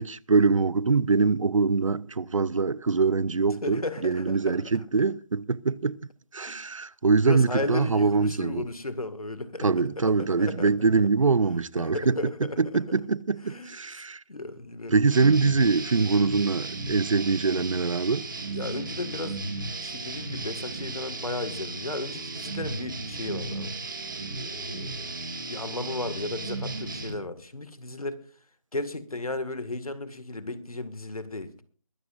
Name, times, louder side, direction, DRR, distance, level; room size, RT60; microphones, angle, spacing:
voice 1, 0.0-6.0 6.3-8.6 9.6-12.2 12.6-14.2 14.9-18.3, right 4 dB, 65° right, 0.6 m, -23 dB
voice 2, 3.6-4.6 6.4-6.6 7.2-10.7 11.8-12.8 13.5-13.7 14.3-14.9 18.5-19.4 19.8-23.7 24.3-25.2 25.5-28.2 28.7-31.5, left 2 dB, 80° left, 1.9 m, -35 dB
sound 1, 15.1-27.1, right 3 dB, 35° right, 1.9 m, -35 dB
22.5 x 13.0 x 2.5 m
figure-of-eight pair, 165°, 18 cm